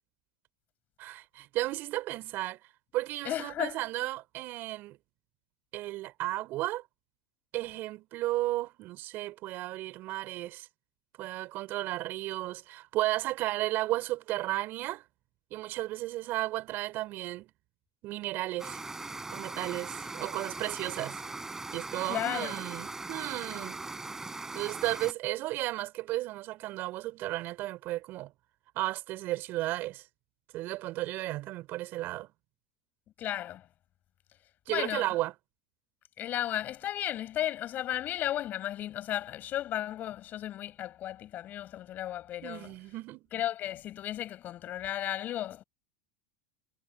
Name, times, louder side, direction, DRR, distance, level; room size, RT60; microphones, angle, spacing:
voice 1, 1.0-2.6 2.9-5.0 5.7-6.8 7.5-10.7 11.2-15.0 15.5-17.5 18.0-18.8 19.3-21.2 21.7-23.8 24.5-28.3 28.7-30.0 30.5-32.3 34.7-35.3 42.4-43.3, right 17 dB, 50° right, 4.8 m, -34 dB
voice 2, 3.2-3.8 22.1-22.5 33.2-33.6 34.7-35.1 36.2-42.7 43.3-45.6, left 12 dB, 40° left, 6.8 m, -34 dB
sound 1, 18.6-25.1, right 3 dB, 10° right, 6.1 m, -40 dB
hypercardioid pair, 100°, 4 cm